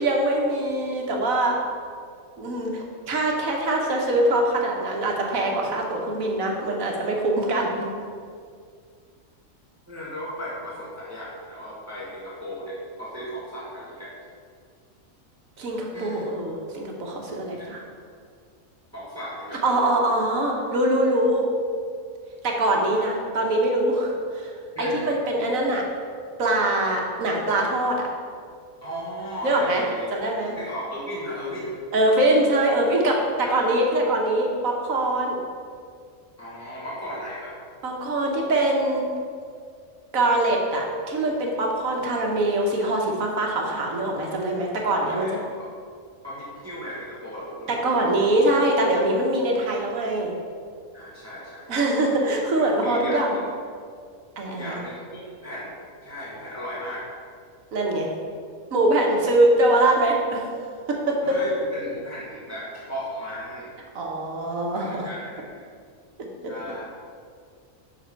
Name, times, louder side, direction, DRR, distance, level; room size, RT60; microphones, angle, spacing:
voice 1, 0.0-1.6 2.4-7.9 15.6-17.8 19.6-21.5 22.4-25.8 26.4-28.1 29.4-29.8 30.1-30.5 31.9-35.4 37.8-39.0 40.1-45.3 47.7-50.3 51.7-53.4 54.4-54.8 57.7-58.1 58.7-60.4 60.9-61.3 63.9-65.1, right 1 dB, 80° right, 0 dB, 1.5 m, -23 dB
voice 2, 9.9-14.1 15.9-16.3 17.6-17.8 18.9-20.0 22.9-23.1 24.7-25.2 28.8-30.0 30.6-31.7 33.3-33.7 36.4-37.6 44.8-45.3 46.2-47.9 50.9-51.6 52.1-52.2 52.8-53.2 54.5-55.7 56.0-57.1 61.2-63.7 64.7-65.6 66.5-66.9, equal, 10° right, -8 dB, 1.6 m, -36 dB
8.1 x 6.1 x 4.4 m, 2.1 s
omnidirectional pair, 1.4 m